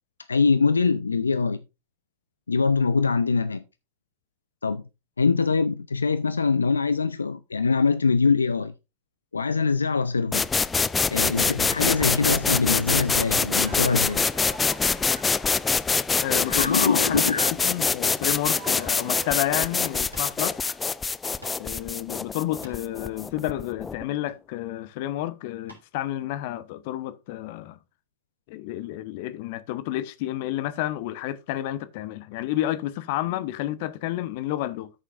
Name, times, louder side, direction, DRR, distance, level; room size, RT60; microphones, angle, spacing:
voice 1, 0.3-1.6 2.5-3.6 4.6-4.8 5.2-8.7 9.3-10.5 11.1-14.3 16.4-17.5, left 4 dB, 75° left, 0.5 m, -23 dB
sound 1, 10.3-24.0, left 4 dB, 15° left, 0.4 m, -25 dB
sound 2, 13.0-16.7 18.2-20.8, right 6 dB, 55° right, 2.3 m, -46 dB
voice 2, 16.2-20.6 21.6-27.8 28.5-34.9, left 14 dB, 50° left, 0.9 m, -30 dB
sound 3, 20.1-20.4 20.8-20.9 21.4-21.7 22.4-23.0 24.1-24.7 25.7-25.9 26.4-26.5, left 1 dB, 85° right, 4.0 m, -49 dB
13.5 x 6.7 x 2.5 m
figure-of-eight pair, 90°, 0 cm